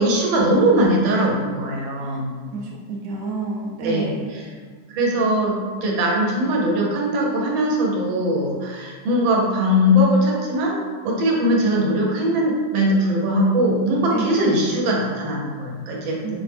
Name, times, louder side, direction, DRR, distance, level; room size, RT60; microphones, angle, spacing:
voice 1, 0.0-2.3 3.8-4.4 4.9-10.8 11.0-16.4, equal, 85° right, -2 dB, 1.5 m, -20 dB
voice 2, 2.5-4.3 14.1-14.4 16.2-16.4, right 3 dB, 60° right, -3 dB, 0.9 m, -29 dB
4.6 x 2.0 x 3.3 m, 1.5 s
omnidirectional pair, 2.1 m